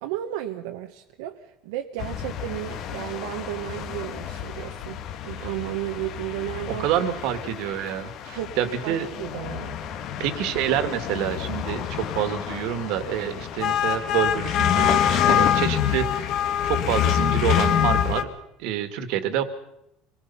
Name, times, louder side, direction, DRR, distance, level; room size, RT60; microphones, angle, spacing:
voice 1, 0.0-5.0 5.2-6.9 8.3-8.5 8.8-9.8, right 13 dB, 85° right, 4 dB, 1.3 m, -33 dB
sound 1, 2.0-18.2, left 9 dB, 50° left, 1.8 m, -26 dB
voice 2, 6.7-9.1 10.2-16.4 16.6-18.3 18.6-19.4, right 10 dB, 70° right, 11 dB, 2.1 m, -27 dB
25.5 x 20.0 x 5.6 m, 0.82 s
cardioid pair, 140°, 0 cm